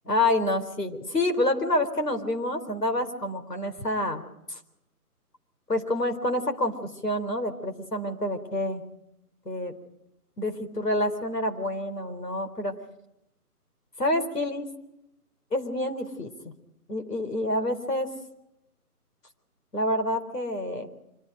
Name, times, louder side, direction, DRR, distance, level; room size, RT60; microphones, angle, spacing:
voice 1, 0.1-4.2 4.5-4.6 5.7-8.8 9.4-9.7 10.4-12.7 14.0-14.7 15.5-16.5 16.9-18.1 19.7-20.9, left 1 dB, 90° left, 6 dB, 4.3 m, -28 dB
26.5 x 25.5 x 5.1 m, 0.86 s
figure-of-eight pair, 155°, 47 cm